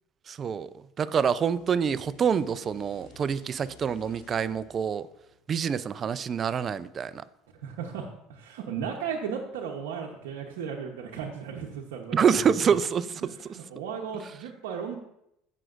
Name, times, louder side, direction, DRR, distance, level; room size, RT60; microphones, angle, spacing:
voice 1, 0.3-0.7 1.0-5.1 5.5-7.2 12.1-13.6, right 7 dB, 40° right, 16 dB, 0.5 m, -26 dB
sound 1, 1.0-6.4, left 4 dB, 85° left, 2.0 m, -55 dB
voice 2, 7.6-12.5 13.5-15.0, right 7 dB, 80° right, -1 dB, 0.9 m, -35 dB
15.0 x 6.3 x 2.5 m, 0.80 s
supercardioid pair, 85°, 0 cm